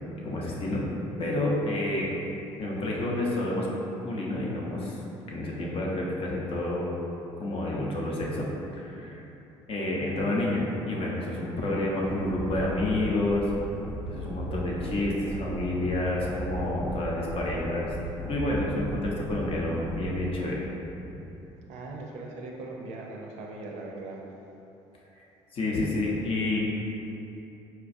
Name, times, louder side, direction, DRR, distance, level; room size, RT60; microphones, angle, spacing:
voice 1, 0.2-0.8 1.2-2.1 2.6-3.7 4.0-5.0 5.3-6.9 7.4-8.5 8.7-9.2 9.7-13.5 14.1-17.9 18.2-20.6 25.5-26.6, left 1 dB, 45° left, -3 dB, 0.7 m, -29 dB
sound 1, 12.1-20.1, right 1 dB, 5° right, 0.6 m, -37 dB
voice 2, 21.7-24.2, right 2 dB, 65° right, 0 dB, 0.5 m, -39 dB
4.2 x 2.3 x 2.6 m, 2.9 s
hypercardioid pair, 65°, 13 cm